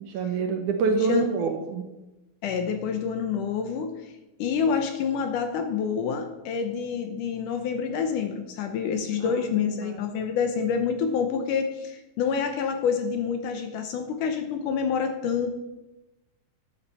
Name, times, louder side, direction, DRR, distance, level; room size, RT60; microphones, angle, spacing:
voice 1, 0.1-1.9 9.2-9.3 9.8-10.0, right 4 dB, 70° right, 5 dB, 2.1 m, -26 dB
voice 2, 2.4-4.1 4.4-15.5, left 6 dB, 75° left, 6 dB, 2.1 m, -27 dB
12.5 x 9.9 x 4.2 m, 1.0 s
omnidirectional pair, 4.1 m